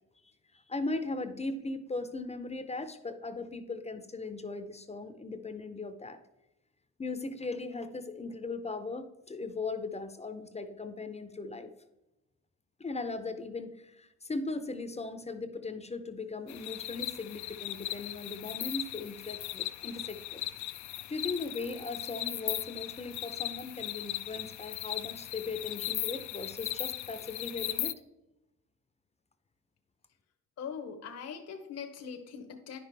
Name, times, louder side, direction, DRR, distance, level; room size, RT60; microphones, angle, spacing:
voice 1, 0.7-6.2 7.0-11.7 12.8-20.4 21.1-28.0, left 3 dB, 20° left, 10 dB, 0.6 m, -38 dB
sound 1, 16.5-27.9, left 14 dB, 70° left, 0.5 m, -38 dB
voice 2, 30.6-32.8, left 6 dB, 55° left, 6 dB, 0.9 m, -41 dB
9.8 x 5.9 x 3.4 m, 0.94 s
cardioid pair, 90°, 30 cm